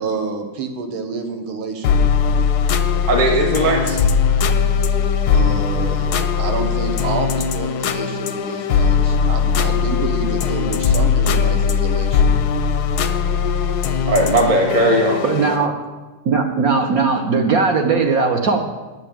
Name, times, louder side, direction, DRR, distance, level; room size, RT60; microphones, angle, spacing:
voice 1, 0.0-2.0 5.3-12.3, right 4 dB, 75° right, 6 dB, 1.9 m, -28 dB
sound 1, 1.8-15.7, left 6 dB, 70° left, 1.0 m, -19 dB
voice 2, 3.1-4.0 14.1-15.2, right 1 dB, 40° right, 1 dB, 2.1 m, -17 dB
voice 3, 15.2-15.7 16.2-18.6, right 4 dB, 55° right, 4 dB, 1.1 m, -18 dB
9.1 x 6.7 x 8.5 m, 1.2 s
omnidirectional pair, 2.3 m